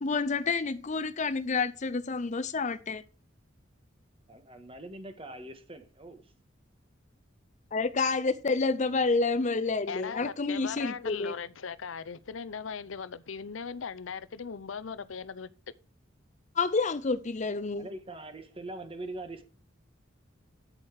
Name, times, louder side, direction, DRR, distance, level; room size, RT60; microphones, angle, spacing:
voice 1, 0.0-3.0 7.7-11.3 16.6-17.9, left 4 dB, 40° left, 0.6 m, -29 dB
voice 2, 4.3-6.3 17.8-19.4, right 2 dB, 30° right, 1.5 m, -42 dB
voice 3, 9.9-15.5, left 6 dB, 90° left, 0.7 m, -39 dB
9.0 x 8.7 x 4.8 m
head